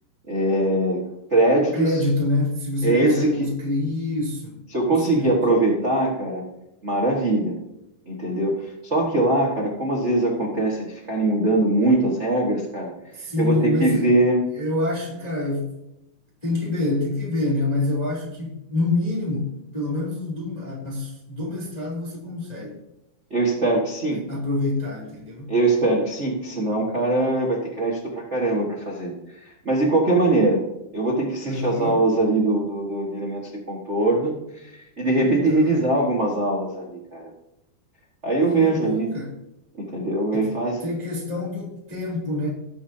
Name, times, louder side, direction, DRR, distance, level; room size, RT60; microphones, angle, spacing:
voice 1, 0.3-1.0 1.3-1.9 2.8-3.5 4.7-6.4 6.8-7.6 8.1-12.9 13.4-14.4 23.3-24.2 25.5-29.1 29.4-30.6 30.9-37.3 38.2-39.1 39.8-40.8, right 2 dB, 70° right, -3 dB, 0.6 m, -22 dB
voice 2, 1.7-4.6 4.9-5.4 13.1-14.1 14.5-15.7 16.4-22.8 24.3-25.5 31.5-32.0 35.5-35.8 38.4-39.4 40.3-40.5 40.8-42.5, left 2 dB, 10° left, -4 dB, 2.4 m, -26 dB
20.5 x 7.4 x 2.8 m, 0.86 s
omnidirectional pair, 4.4 m